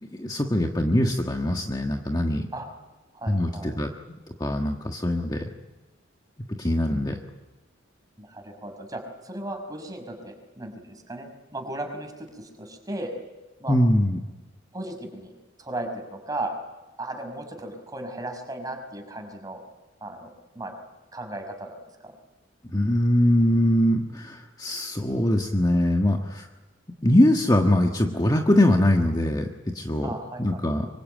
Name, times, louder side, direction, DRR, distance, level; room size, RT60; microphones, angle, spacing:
voice 1, 0.2-2.5 3.3-5.5 6.6-7.2 13.7-14.2 22.7-26.5 27.0-30.1 30.4-30.9, left 1 dB, 20° left, 2 dB, 1.5 m, -22 dB
voice 2, 3.1-3.7 8.2-13.1 13.6-13.8 14.7-16.5 17.0-19.6 20.0-20.7 21.1-21.8 22.0-22.2 30.0-30.6, right 1 dB, 20° right, 4 dB, 5.5 m, -36 dB
25.0 x 24.0 x 9.2 m, 1.1 s
head